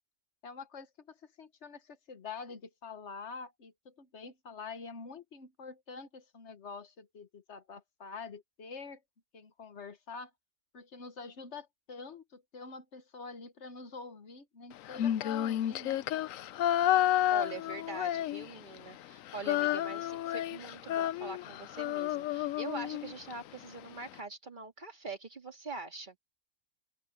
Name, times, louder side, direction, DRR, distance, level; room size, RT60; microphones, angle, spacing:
voice 1, 0.4-9.0 9.3-10.3 10.7-16.0, left 5 dB, 55° left, 1.4 m, -46 dB
Female singing, 14.9-18.8 19.0-23.3, left 12 dB, 75° left, 1.0 m, -31 dB
voice 2, 17.3-26.2, right 3 dB, 35° right, 2.2 m, -43 dB
open air
omnidirectional pair, 1.4 m